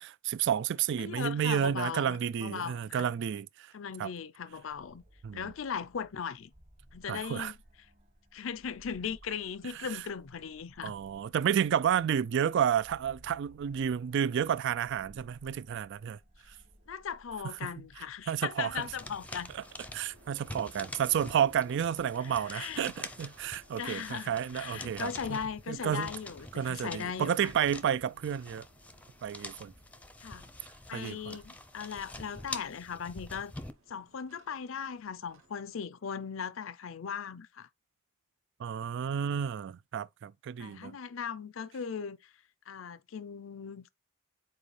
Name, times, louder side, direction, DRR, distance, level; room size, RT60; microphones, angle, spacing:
voice 1, 0.0-3.7 4.0-4.1 5.2-5.5 7.1-7.5 9.7-10.0 10.8-16.2 17.6-17.7 18.3-18.8 19.5-19.6 19.9-25.4 25.7-26.1 26.5-28.7 29.2-29.7 30.9-31.4 38.6-41.0, right 8 dB, 60° right, 0.3 m, -31 dB
voice 2, 1.0-3.1 3.7-5.0 5.3-6.5 6.9-7.6 8.3-10.9 16.9-19.5 22.2-22.9 23.8-27.5 30.2-30.5 30.9-33.5 33.9-37.7 40.6-42.3 42.7-43.9, left 7 dB, 70° left, 0.5 m, -38 dB
sound 1, 4.5-19.1, equal, 45° right, 2.1 m, -60 dB
sound 2, 18.7-33.7, left 2 dB, 5° left, 0.6 m, -47 dB
sound 3, 19.0-35.8, right 2 dB, 80° right, 1.2 m, -62 dB
7.5 x 4.3 x 3.3 m
head